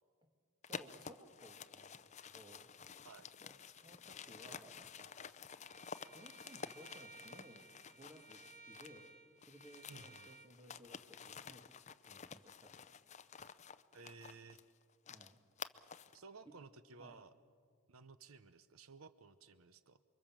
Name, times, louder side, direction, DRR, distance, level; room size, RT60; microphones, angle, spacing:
sound 1, 0.6-9.1 9.4-16.2, left 6 dB, 35° left, 0.6 m, -52 dB
voice 1, 0.7-2.7 3.4-5.4 6.1-9.2 9.4-12.9 15.1-15.4 16.5-16.6 17.0-17.2, equal, 20° right, 4 dB, 2.0 m, -60 dB
Bowed string instrument, 5.6-10.5, right 3 dB, 45° right, 1.3 m, -59 dB
voice 2, 9.9-10.3 13.9-14.6 16.1-17.3 17.9-20.0, right 4 dB, 80° right, 13 dB, 0.8 m, -56 dB
29.5 x 23.0 x 7.4 m, 2.3 s
head